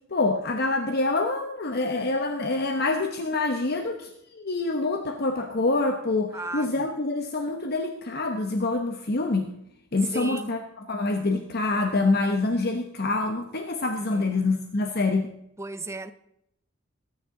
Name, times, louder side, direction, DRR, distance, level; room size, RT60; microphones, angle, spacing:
voice 1, 0.1-9.5 9.9-15.3, left 2 dB, 55° left, 5 dB, 1.0 m, -26 dB
voice 2, 6.3-6.8 10.1-10.5 14.1-14.5 15.6-16.1, right 2 dB, 15° right, 11 dB, 0.7 m, -35 dB
21.5 x 9.6 x 3.8 m, 0.77 s
head